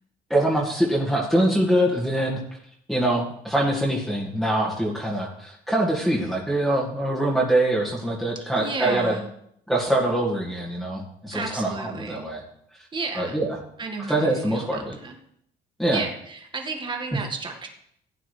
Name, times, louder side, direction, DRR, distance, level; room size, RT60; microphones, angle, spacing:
voice 1, 0.3-2.4 2.9-9.1 9.7-12.4 12.7-12.9 13.1-13.6 14.1-15.0 15.8-16.0, right 1 dB, ahead, -4 dB, 1.9 m, -24 dB
voice 2, 8.6-9.3 11.3-12.3 12.9-13.4 13.8-15.2 15.9-17.7, right 4 dB, 30° right, 3 dB, 1.8 m, -33 dB
16.0 x 9.0 x 3.3 m, 0.73 s
cardioid pair, 110°, 17 cm